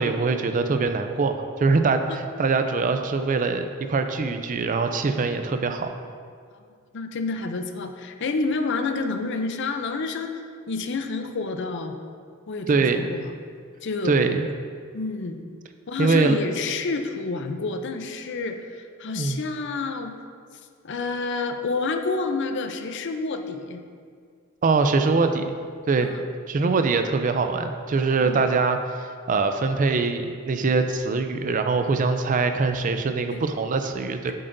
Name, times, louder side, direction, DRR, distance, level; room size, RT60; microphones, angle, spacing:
voice 1, 0.0-5.9 12.7-13.0 14.0-14.5 16.0-16.4 19.1-19.4 24.6-25.5 25.9-26.1 26.5-34.3, right 4 dB, 40° right, 7 dB, 0.4 m, -23 dB
voice 2, 6.9-11.9 12.5-13.3 13.8-14.1 14.9-15.4 15.9-20.1 20.8-23.8 26.0-26.2 28.2-28.4 33.3-33.5, left 3 dB, 55° left, 6 dB, 0.5 m, -29 dB
7.8 x 7.7 x 2.6 m, 2.1 s
head